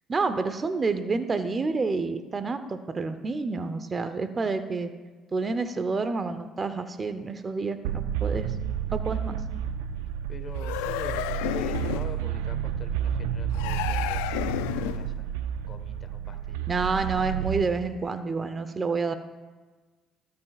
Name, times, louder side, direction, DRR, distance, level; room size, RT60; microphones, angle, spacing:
voice 1, 0.1-4.9 5.3-8.5 8.9-9.4 16.7-19.1, right 4 dB, 35° right, 10 dB, 0.8 m, -28 dB
sound 1, 7.8-17.6, right 9 dB, 90° right, 0.4 m, -31 dB
voice 2, 10.3-15.3 15.7-16.7, left 4 dB, 45° left, 7 dB, 1.3 m, -43 dB
sound 2, 10.6-12.2 13.5-15.2, left 13 dB, 90° left, 0.4 m, -31 dB
17.5 x 8.4 x 2.4 m, 1.3 s
supercardioid pair, 65°, 0 cm